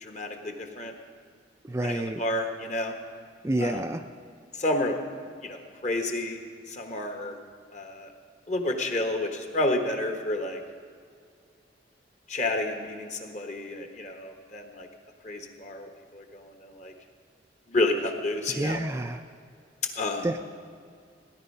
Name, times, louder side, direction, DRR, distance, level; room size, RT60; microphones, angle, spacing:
voice 1, 0.0-0.9 1.8-2.9 3.6-3.8 4.6-5.0 5.4-6.4 6.7-7.3 7.7-8.1 8.5-10.6 12.3-14.9 15.2-16.9 17.7-18.8 19.9-20.3, left 2 dB, 40° left, 5 dB, 1.3 m, -30 dB
voice 2, 1.7-2.2 3.4-4.0 18.5-19.2 20.2-20.4, right 1 dB, 15° right, 6 dB, 0.4 m, -28 dB
17.0 x 10.5 x 5.5 m, 2.2 s
head